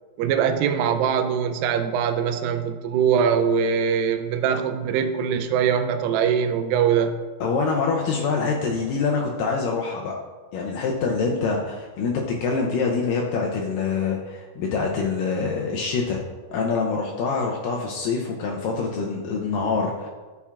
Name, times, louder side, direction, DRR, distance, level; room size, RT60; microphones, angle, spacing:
voice 1, 0.2-7.1, right 7 dB, 85° right, 7 dB, 2.3 m, -22 dB
voice 2, 7.4-10.1 10.5-16.2 16.5-20.1, left 4 dB, 80° left, -1 dB, 2.3 m, -25 dB
11.5 x 7.0 x 2.4 m, 1.4 s
omnidirectional pair, 4.1 m